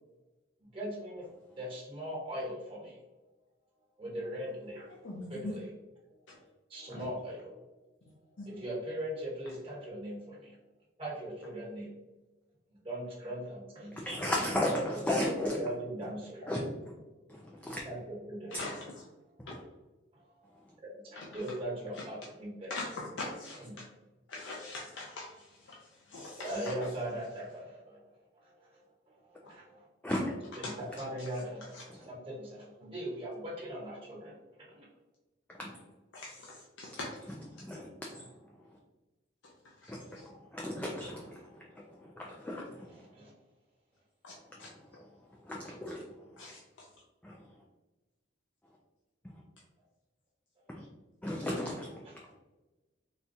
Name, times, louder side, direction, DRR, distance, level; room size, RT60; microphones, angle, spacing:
voice 1, 0.7-1.2 1.5-3.0 4.0-4.9 5.3-5.7 6.1-6.4 6.7-7.5 8.0-8.1 8.4-10.6 11.0-11.9 12.8-14.3 14.7-14.8 15.2-16.5 17.8-18.0 18.3-18.8 20.8-22.7 23.6-23.8 26.4-28.0 28.3-29.9 30.6-34.3 34.7-34.8 43.1-43.3 52.0-52.1, right 1 dB, 30° right, -5 dB, 1.4 m, -40 dB
voice 2, 5.0-5.5 8.4-8.5 18.5-18.8 21.2-21.3 22.0-22.1 22.7-23.7 24.3-26.9 30.6-30.7 31.7-31.8 36.1-37.1 39.8-40.2 44.2-44.3 44.6-44.7 46.4-46.6, left 2 dB, 70° left, -3 dB, 0.5 m, -42 dB
voice 3, 14.0-15.7 16.5-16.6 17.3-17.8 18.6-18.7 19.4-19.6 30.0-30.4 31.9-32.1 35.5-35.8 37.5-38.8 39.9-41.6 41.9-43.1 44.4-44.5 45.0-46.4 47.2-47.5 50.8-50.9 51.2-52.3, left 1 dB, 10° left, -3 dB, 0.3 m, -36 dB
4.1 x 2.3 x 2.7 m, 1.1 s
head